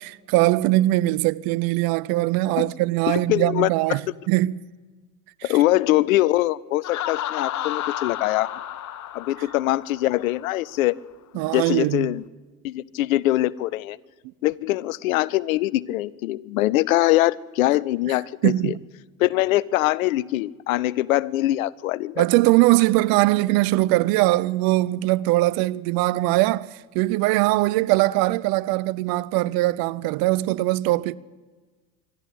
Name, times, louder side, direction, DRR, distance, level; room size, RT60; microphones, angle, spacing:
voice 1, 0.0-4.0 4.3-4.5 5.4-5.5 11.3-12.1 18.4-18.8 22.2-31.2, right 18 dB, 60° right, 0.7 m, -21 dB
voice 2, 3.1-3.7 5.4-8.5 9.1-11.0 11.3-12.2 12.6-14.0 14.4-18.7 19.2-22.3, left 16 dB, 80° left, 0.7 m, -23 dB
Laughter, 6.8-10.5, left 12 dB, 45° left, 1.1 m, -32 dB
26.0 x 12.0 x 8.5 m
hypercardioid pair, 75°, 41 cm